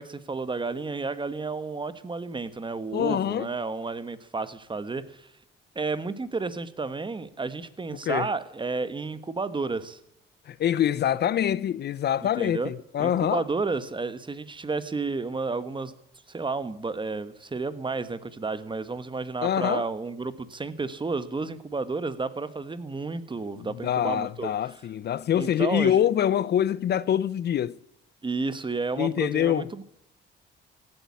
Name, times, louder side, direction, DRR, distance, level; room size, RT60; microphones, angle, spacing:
voice 1, 0.0-5.3 5.7-10.0 12.4-12.7 13.0-15.9 16.3-24.5 25.4-26.0 28.2-29.8, right 3 dB, 25° right, 1.4 m, -31 dB
voice 2, 2.9-3.5 8.1-8.3 10.5-13.4 19.4-19.8 23.6-27.8 29.0-29.7, left 10 dB, 55° left, 0.6 m, -25 dB
16.0 x 8.7 x 9.6 m
cardioid pair, 90°, 20 cm